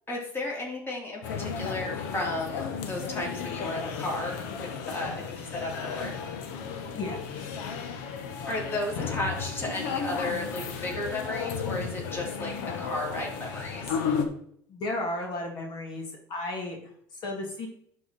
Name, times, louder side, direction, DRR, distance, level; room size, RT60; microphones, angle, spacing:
voice 1, 0.1-6.1 8.5-12.5 12.8-13.9, left 1 dB, 25° left, -2 dB, 3.5 m, -34 dB
sound 1, 1.2-14.3, left 6 dB, 75° left, 1.3 m, -34 dB
voice 2, 14.7-17.7, left 2 dB, 50° left, 1 dB, 2.4 m, -34 dB
11.5 x 4.7 x 4.3 m, 0.65 s
supercardioid pair, 95°, 9 cm